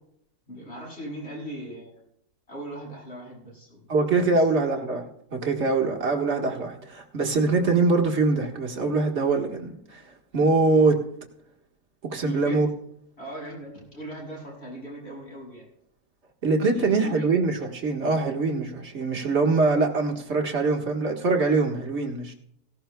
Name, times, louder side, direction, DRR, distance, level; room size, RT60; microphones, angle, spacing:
voice 1, 0.5-2.0 2.5-3.9 4.3-4.5 12.2-12.6 13.2-15.6 16.6-17.3, right 1 dB, 40° left, -4 dB, 7.2 m, -39 dB
voice 2, 3.9-10.0 10.3-11.0 12.0-12.7 16.4-22.3, right 3 dB, 45° right, 2 dB, 1.7 m, -23 dB
17.5 x 16.5 x 2.3 m, 0.74 s
omnidirectional pair, 1.7 m